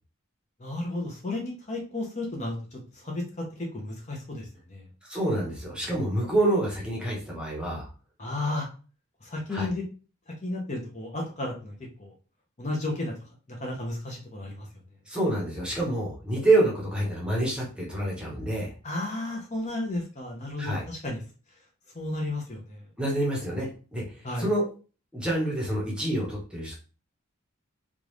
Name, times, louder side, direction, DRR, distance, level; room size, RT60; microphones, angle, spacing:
voice 1, 0.6-3.2 3.5-4.8 8.2-8.7 9.2-9.8 10.4-12.1 12.6-13.1 13.5-14.7 18.8-21.2 21.9-22.8 24.2-24.5, left 2 dB, 35° left, -1 dB, 0.8 m, -33 dB
voice 2, 5.0-7.9 9.5-9.7 15.1-18.7 20.6-20.8 23.0-24.6 25.1-26.8, right 1 dB, 5° right, -3 dB, 1.0 m, -27 dB
3.6 x 2.4 x 3.1 m, 0.36 s
head